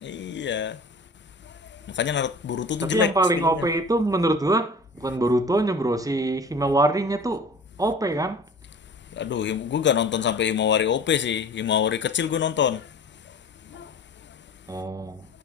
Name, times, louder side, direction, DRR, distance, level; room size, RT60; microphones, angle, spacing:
voice 1, 0.0-0.8 1.9-3.1 3.4-3.6 9.2-12.8 13.7-13.9, left 9 dB, 60° left, 0.6 m, -25 dB
voice 2, 2.8-8.4 14.7-15.3, right 1 dB, 15° right, 1.4 m, -24 dB
10.5 x 6.0 x 3.9 m
cardioid pair, 60°, 21 cm